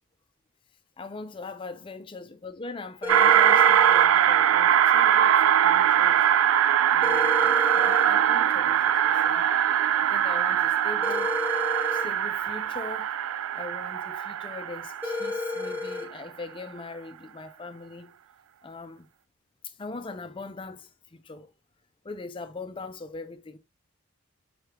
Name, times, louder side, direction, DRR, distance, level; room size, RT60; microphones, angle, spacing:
voice 1, 1.0-6.3 6.9-9.5 10.0-11.3 11.9-18.1 18.6-19.1 19.6-21.5 22.0-23.6, left 3 dB, 25° left, 0.4 m, -41 dB
sound 1, 3.0-4.1 7.0-8.1 11.0-12.1 15.0-16.1, left 3 dB, 10° right, 1.2 m, -32 dB
sound 2, 3.1-15.8, right 10 dB, 75° right, 0.3 m, -22 dB
4.8 x 3.3 x 2.9 m
head